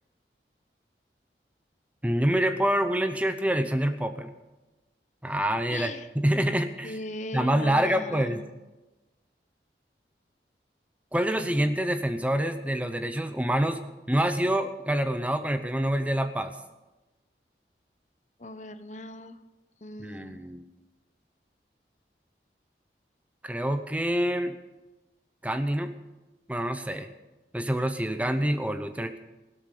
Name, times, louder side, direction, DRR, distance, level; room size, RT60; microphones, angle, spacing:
voice 1, 2.0-4.3 5.2-7.0 7.3-8.4 11.1-16.5 20.0-20.6 23.4-24.6 25.4-25.9 26.5-27.1 27.5-29.2, right 1 dB, 10° right, 8 dB, 0.7 m, -26 dB
voice 2, 5.7-6.1 6.8-8.5 18.4-19.4 19.8-20.4, left 2 dB, 40° left, 11 dB, 0.8 m, -39 dB
16.5 x 13.0 x 6.8 m, 1.1 s
head